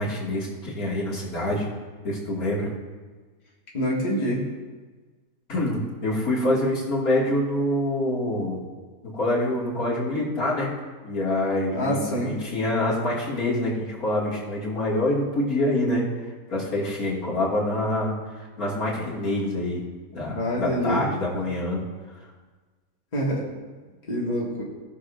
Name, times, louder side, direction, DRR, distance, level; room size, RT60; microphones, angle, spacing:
voice 1, 0.0-1.7 2.0-2.7 5.5-8.6 9.1-10.7 11.0-16.1 16.5-19.8 20.1-21.8, left 1 dB, 65° left, -5 dB, 2.7 m, -26 dB
voice 2, 3.7-4.4 11.7-12.3 20.3-21.1 23.1-23.4 24.1-24.6, equal, 25° left, -5 dB, 1.8 m, -26 dB
18.5 x 6.5 x 2.5 m, 1.4 s
omnidirectional pair, 1.6 m